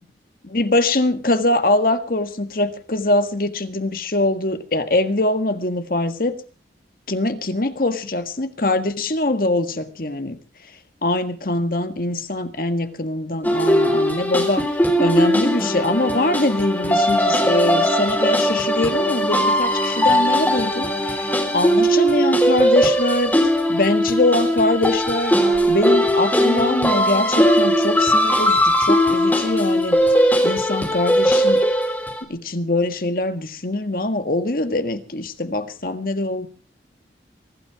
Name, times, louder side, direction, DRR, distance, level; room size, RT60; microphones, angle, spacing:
voice 1, 0.4-6.4 7.1-10.4 11.0-14.7 15.0-23.3 23.7-25.4 25.7-30.0 30.4-31.6 32.3-36.5, left 2 dB, 50° left, 1.7 m, -23 dB
sound 1, 13.4-32.2, equal, 10° left, 3.4 m, -19 dB
23.5 x 12.5 x 4.8 m
head